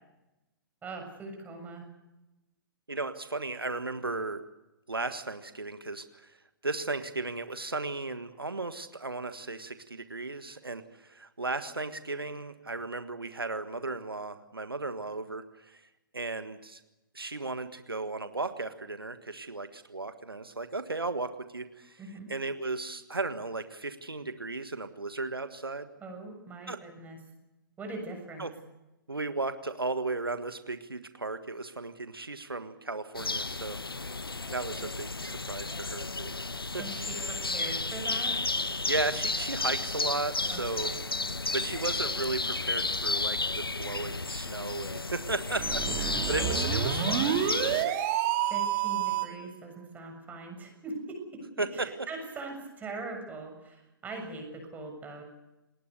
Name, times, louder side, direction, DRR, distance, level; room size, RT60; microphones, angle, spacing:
voice 1, 0.8-1.9 22.0-22.3 26.0-27.2 27.8-28.5 36.8-38.4 40.5-41.0 45.8-46.0 46.2-46.7 48.4-51.4 51.7-55.2, right 2 dB, 15° right, 3 dB, 7.0 m, -41 dB
voice 2, 2.9-4.4 4.9-6.4 6.6-15.8 16.1-16.8 17.1-22.0 22.3-25.9 26.7-26.8 28.4-28.5 29.1-33.8 34.5-36.3 36.7-36.8 37.2-37.3 38.9-40.9 41.5-47.4 47.8-48.0 51.6-51.9, right 3 dB, 85° right, 10 dB, 1.5 m, -35 dB
sound 1, 33.1-47.8, left 3 dB, 85° left, 1.0 m, -32 dB
sound 2, 45.5-49.4, right 10 dB, 35° right, 3.3 m, -29 dB
28.5 x 20.0 x 6.9 m, 0.99 s
figure-of-eight pair, 120°, 12 cm